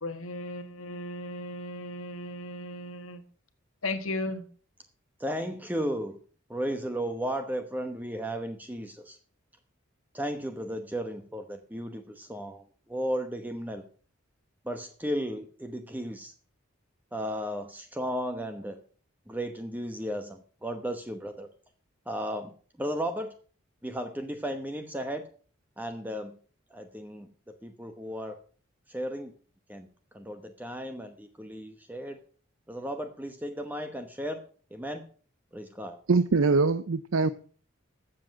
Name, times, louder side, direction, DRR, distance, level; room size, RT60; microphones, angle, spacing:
voice 1, 0.0-3.2 3.8-4.4, left 2 dB, 90° left, 1.4 m, -36 dB
voice 2, 5.2-6.2 6.5-9.2 10.1-13.8 14.6-16.3 17.1-18.8 19.3-21.5 22.1-22.5 22.8-23.3 23.8-25.3 25.8-26.3 26.7-28.4 28.9-29.3 29.7-29.9 30.1-32.2 32.7-34.4 34.7-35.0 35.5-36.0, equal, 10° right, 0.9 m, -34 dB
voice 3, 36.1-37.3, right 4 dB, 85° right, 0.6 m, -23 dB
13.5 x 7.6 x 6.3 m
head